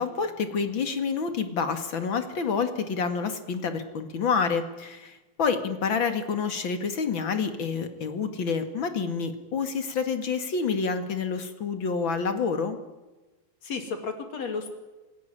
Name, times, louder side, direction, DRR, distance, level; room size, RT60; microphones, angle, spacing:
voice 1, 0.0-12.8, left 5 dB, 45° left, 8 dB, 2.5 m, -28 dB
voice 2, 6.1-6.4 13.6-14.8, left 4 dB, 60° left, 7 dB, 3.8 m, -34 dB
27.5 x 16.0 x 10.0 m, 1.2 s
omnidirectional pair, 3.5 m